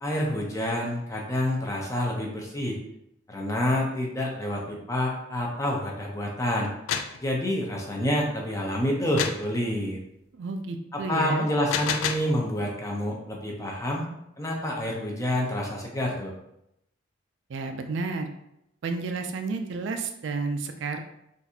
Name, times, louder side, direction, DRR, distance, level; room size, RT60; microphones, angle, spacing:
voice 1, 0.0-2.8 3.3-6.7 7.2-10.0 10.9-14.1 14.4-16.3, left 1 dB, 15° left, -1 dB, 0.5 m, -28 dB
sound 1, 6.6-7.2 9.2-9.5 11.5-12.3, left 7 dB, 85° left, 0.3 m, -29 dB
voice 2, 10.3-11.5 17.5-18.3 18.8-21.0, right 4 dB, 65° right, 6 dB, 0.3 m, -31 dB
3.9 x 2.4 x 2.7 m, 0.82 s
head